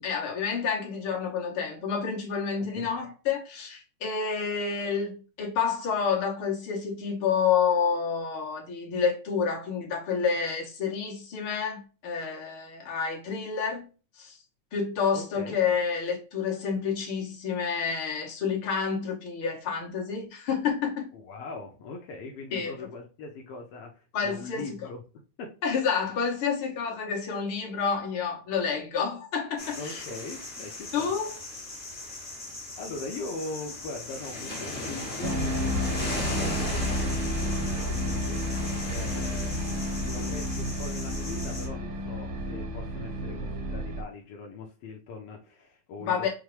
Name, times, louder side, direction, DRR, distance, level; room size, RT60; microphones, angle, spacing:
voice 1, 0.0-13.9 14.1-14.4 14.7-21.1 22.5-22.7 24.1-24.6 25.6-30.0 30.9-31.3 46.0-46.3, left 6 dB, 55° left, 1.7 m, -29 dB
voice 2, 2.5-2.9 15.1-15.6 21.1-25.0 25.4-25.6 29.8-31.1 32.0-32.1 32.8-38.4 38.8-46.3, left 3 dB, 80° left, 1.3 m, -41 dB
sound 1, 29.6-41.7, left 2 dB, 35° left, 0.8 m, -38 dB
sound 2, 35.2-44.0, equal, 70° right, 1.1 m, -31 dB
5.9 x 2.2 x 3.1 m
omnidirectional pair, 3.3 m